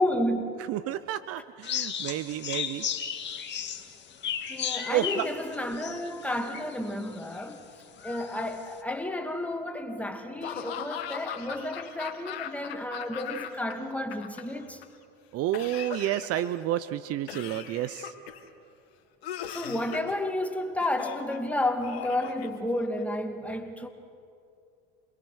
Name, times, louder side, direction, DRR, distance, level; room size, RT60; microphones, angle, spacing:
voice 1, 0.0-0.6 4.5-7.7 8.0-14.8 19.5-23.9, left 1 dB, 5° left, 2.6 m, -31 dB
voice 2, 0.7-2.9 4.9-5.3 15.3-18.1, right 13 dB, 50° right, 0.9 m, -30 dB
sound 1, 1.6-6.9 7.4-7.5 8.0-8.5, left 8 dB, 35° left, 2.2 m, -34 dB
Laughter / Cough, 10.4-13.7 14.0-14.8 15.5-16.6 17.3-18.5 19.2-20.2 20.8-21.4 21.8-23.0, left 9 dB, 85° left, 2.1 m, -39 dB
28.0 x 21.5 x 6.5 m
hypercardioid pair, 85°, 30 cm